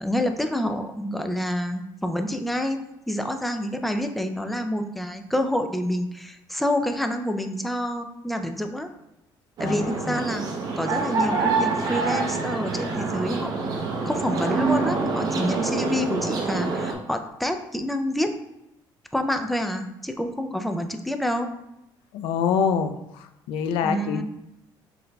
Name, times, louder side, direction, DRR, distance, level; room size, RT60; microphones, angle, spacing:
voice 1, 0.0-2.8 3.1-8.9 9.6-10.4 10.8-18.3 19.1-21.5 23.8-24.2, left 1 dB, ahead, 6 dB, 0.3 m, -28 dB
voice 2, 9.6-10.2 22.1-24.2, left 6 dB, 85° left, 8 dB, 0.4 m, -26 dB
sound 1, 9.6-16.9, right 4 dB, 50° right, 0.7 m, -26 dB
5.7 x 3.9 x 2.2 m, 0.89 s
cardioid pair, 145°, 9 cm